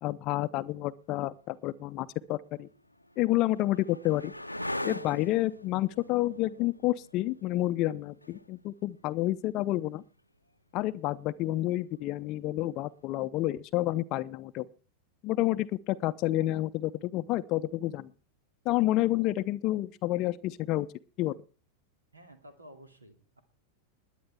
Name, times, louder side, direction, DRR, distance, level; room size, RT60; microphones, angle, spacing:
voice 1, 0.0-2.7 3.2-4.3 4.8-10.0 10.7-14.7 15.2-18.1 18.7-20.9 21.2-21.4, left 16 dB, 40° left, 0.5 m, -29 dB
sound 1, 1.4-1.5 2.4-10.0 12.3-12.9, left 1 dB, 85° left, 0.6 m, -42 dB
voice 2, 22.1-23.4, equal, 80° right, 2.5 m, -52 dB
20.5 x 10.0 x 3.4 m
figure-of-eight pair, 90°, 0 cm